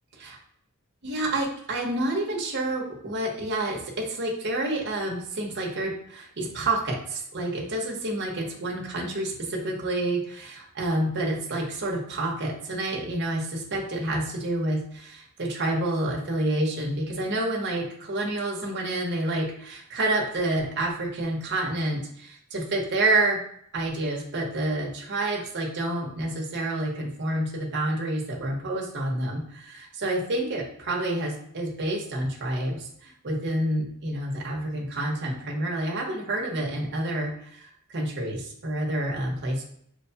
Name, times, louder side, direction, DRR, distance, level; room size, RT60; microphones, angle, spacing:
voice 1, 1.0-23.4 23.7-39.6, right 1 dB, 55° right, -1 dB, 0.9 m, -28 dB
6.1 x 2.2 x 2.7 m, 0.67 s
head